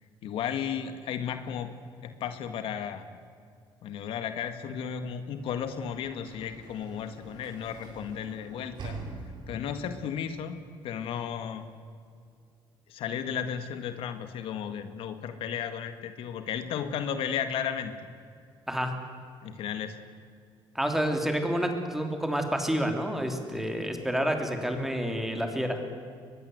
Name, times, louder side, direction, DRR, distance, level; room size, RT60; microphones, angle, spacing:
voice 1, 0.2-1.7 2.0-3.1 3.8-9.0 9.5-10.6 10.8-11.6 12.9-17.9 19.4-20.0, left 8 dB, 75° left, 9 dB, 1.8 m, -34 dB
Sliding door / Slam, 5.1-9.8, right 3 dB, 55° right, 6.3 m, -45 dB
voice 2, 20.7-25.8, equal, 5° right, 4 dB, 3.3 m, -29 dB
23.0 x 21.0 x 8.0 m, 2.3 s
cardioid pair, 130°, 9 cm